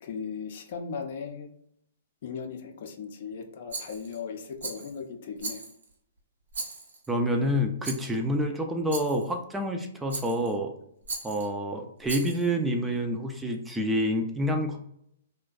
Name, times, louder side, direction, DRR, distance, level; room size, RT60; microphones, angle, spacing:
voice 1, 0.0-1.5 2.2-5.6, left 6 dB, 60° left, 5 dB, 0.5 m, -37 dB
Rattle, 3.7-4.2 4.6-5.0 5.4-5.9 6.5-7.1 7.8-8.2 8.9-9.3 10.1-10.5 11.1-11.5 12.0-12.5, right 3 dB, 80° right, 0.7 m, -38 dB
voice 2, 7.1-10.7 11.2-14.8, equal, 10° right, 3 dB, 0.3 m, -28 dB
2.5 x 2.1 x 2.3 m, 0.72 s
hypercardioid pair, 130°, 0 cm